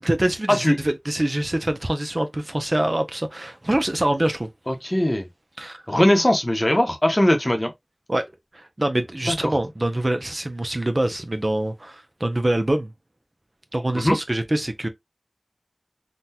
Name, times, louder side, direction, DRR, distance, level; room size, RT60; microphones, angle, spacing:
voice 1, 0.0-4.5 5.6-5.8 8.1-8.3 8.5-12.9 13.7-14.9, right 1 dB, 45° right, 0.6 m, -24 dB
voice 2, 4.7-5.3 5.9-7.7 9.3-9.5 13.9-14.2, left 1 dB, 35° left, 0.8 m, -20 dB
3.7 x 2.2 x 2.7 m
wide cardioid pair, 40°, 0 cm